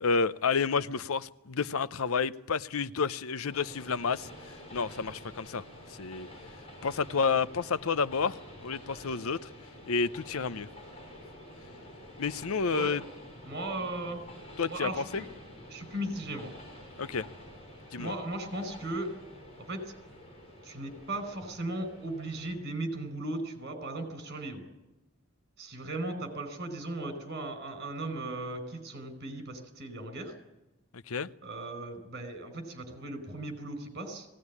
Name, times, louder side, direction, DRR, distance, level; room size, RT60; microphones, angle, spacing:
voice 1, 0.0-4.3 4.7-5.6 6.0-6.3 6.8-9.4 9.9-10.7 12.2-13.0 14.6-14.9 17.0-17.2 17.9-18.1 31.1-31.3, left 5 dB, 75° left, 0.7 m, -30 dB
Train, 3.5-22.6, left 1 dB, 30° left, 7.0 m, -49 dB
voice 2, 13.4-14.2 14.7-15.3 15.7-16.5 18.0-19.1 19.6-19.9 20.6-24.6 25.6-30.3 31.4-34.3, right 2 dB, 50° right, 4.9 m, -37 dB
19.5 x 17.5 x 9.7 m
head